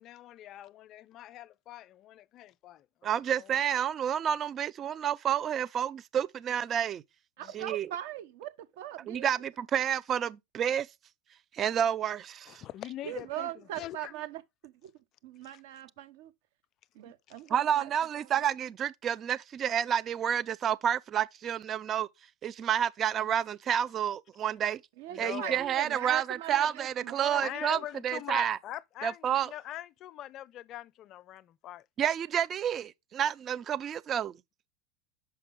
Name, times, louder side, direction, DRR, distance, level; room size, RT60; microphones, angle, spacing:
voice 1, 0.0-3.6 7.4-7.5 12.5-13.5 13.8-14.1 15.5-15.6 25.1-25.7 27.3-31.9, left 13 dB, 45° left, 0.4 m, -43 dB
voice 2, 3.0-7.0 7.5-7.9 9.1-10.9 11.5-12.6 17.5-22.1 22.4-24.8 25.2-28.6 29.0-29.5 32.0-34.3, right 9 dB, 35° right, 0.5 m, -30 dB
voice 3, 7.4-9.3 13.0-14.9 15.2-16.3 16.9-17.9 18.2-18.3 25.0-27.8, right 13 dB, 70° right, 1.0 m, -40 dB
6.5 x 5.3 x 3.8 m
hypercardioid pair, 100°, 0 cm